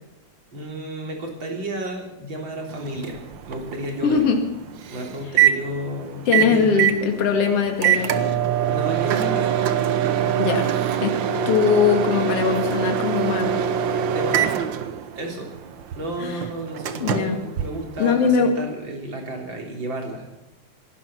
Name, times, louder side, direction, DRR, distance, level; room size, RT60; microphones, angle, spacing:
voice 1, 0.5-4.2 4.9-6.9 8.6-10.4 11.3-11.5 13.9-14.6 15.1-15.5 15.9-20.3, right 1 dB, 40° right, 1 dB, 4.0 m, -32 dB
Microwave oven, 2.7-18.4, right 9 dB, 80° right, 1.0 m, -24 dB
voice 2, 4.0-4.4 6.3-8.4 10.4-10.7 11.0-11.2 11.5-13.6 16.2-16.4 17.0-17.4 18.0-18.5, left 6 dB, 55° left, 4 dB, 3.0 m, -21 dB
18.5 x 11.5 x 5.9 m, 0.95 s
omnidirectional pair, 3.5 m